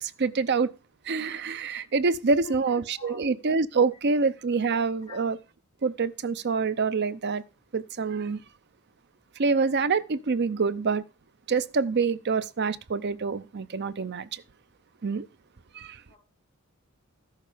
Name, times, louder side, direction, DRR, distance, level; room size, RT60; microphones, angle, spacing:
voice 1, 0.0-0.7 1.1-5.4 5.8-7.4 7.7-8.4 9.4-11.0 11.5-14.4 15.0-15.3 15.7-16.0, right 4 dB, 50° right, 0.6 m, -26 dB
voice 2, 2.4-3.2 5.1-5.2 16.1-16.2, left 2 dB, 25° left, 5.3 m, -45 dB
13.5 x 6.5 x 5.0 m
head